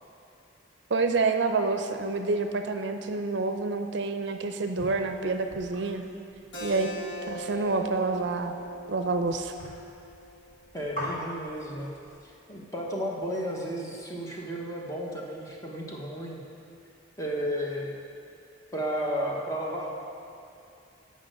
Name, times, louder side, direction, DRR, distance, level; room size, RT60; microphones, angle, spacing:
voice 1, 0.9-6.0 6.6-6.9 7.3-8.5 8.9-9.5, right 3 dB, 65° right, 6 dB, 0.5 m, -28 dB
sound 1, 4.8-12.2, equal, 40° left, 1.7 m, -44 dB
Keyboard (musical), 6.5-11.7, right 1 dB, 75° left, 1.7 m, -41 dB
voice 2, 10.7-11.9 12.2-16.4 17.2-17.9 18.7-19.9, equal, 15° left, -2 dB, 1.0 m, -33 dB
8.4 x 5.3 x 6.5 m, 2.6 s
head